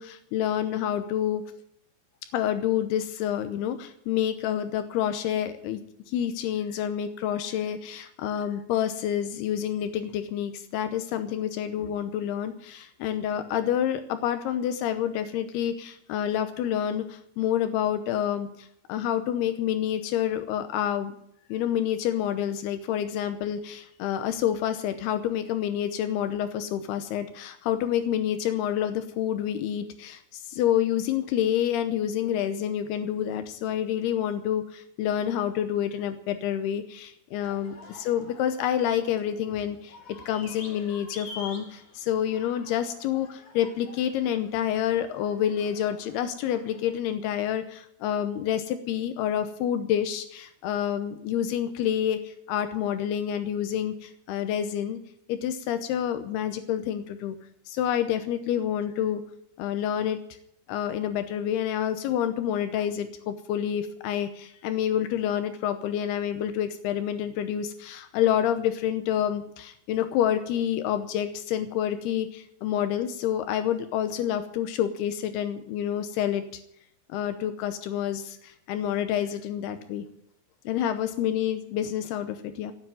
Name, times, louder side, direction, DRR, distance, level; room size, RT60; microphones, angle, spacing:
voice 1, 0.0-1.4 2.3-5.8 6.1-21.2 21.5-40.0 40.3-55.0 55.3-57.4 57.7-59.2 59.6-60.2 60.7-76.6 77.1-80.1 80.7-82.7, left 10 dB, 90° left, 9 dB, 2.3 m, -28 dB
sound 1, 37.4-47.0, left 3 dB, 40° left, 3.3 m, -48 dB
16.5 x 8.2 x 9.0 m, 0.72 s
omnidirectional pair, 5.8 m